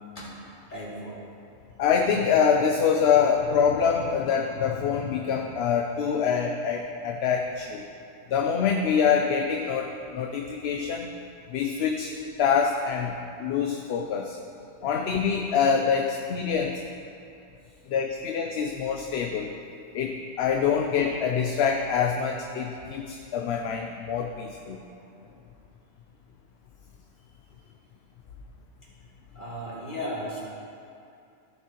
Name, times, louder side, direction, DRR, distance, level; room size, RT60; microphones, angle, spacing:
voice 1, 0.7-1.2 14.8-14.9 24.6-24.7 29.3-30.4, equal, 40° left, -8 dB, 2.7 m, -35 dB
voice 2, 1.8-7.9 8.3-11.1 11.5-13.1 13.4-14.4 14.8-16.8 17.9-19.5 19.9-24.8, left 6 dB, 65° left, 3 dB, 0.8 m, -25 dB
15.0 x 7.4 x 3.0 m, 2.6 s
omnidirectional pair, 1.2 m